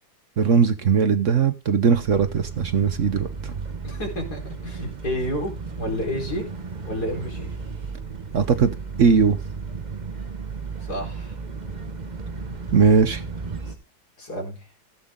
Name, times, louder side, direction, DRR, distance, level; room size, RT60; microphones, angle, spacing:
voice 1, 0.4-3.5 8.3-8.7 9.0-9.4 12.7-13.2, right 6 dB, 55° right, 1.1 m, -19 dB
sound 1, 1.9-13.8, right 4 dB, 30° right, 1.2 m, -34 dB
voice 2, 3.8-6.5 6.8-7.5 10.8-11.4 13.7-13.8 14.2-14.6, equal, 70° left, 4.9 m, -30 dB
16.0 x 8.6 x 3.7 m
omnidirectional pair, 1.7 m